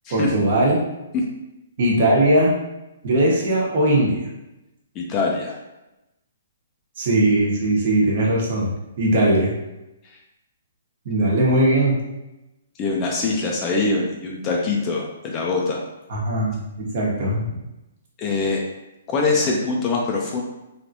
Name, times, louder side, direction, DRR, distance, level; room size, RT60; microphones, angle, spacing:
voice 1, 0.1-0.8 1.8-2.5 3.0-4.2 7.0-9.5 11.0-12.0 16.1-17.5, right 1 dB, 50° right, -3 dB, 1.0 m, -19 dB
voice 2, 5.0-5.6 12.8-15.8 18.2-18.6 19.1-20.4, left 3 dB, 30° left, -2 dB, 0.5 m, -23 dB
3.4 x 2.4 x 2.7 m, 0.96 s
hypercardioid pair, 135°, 0 cm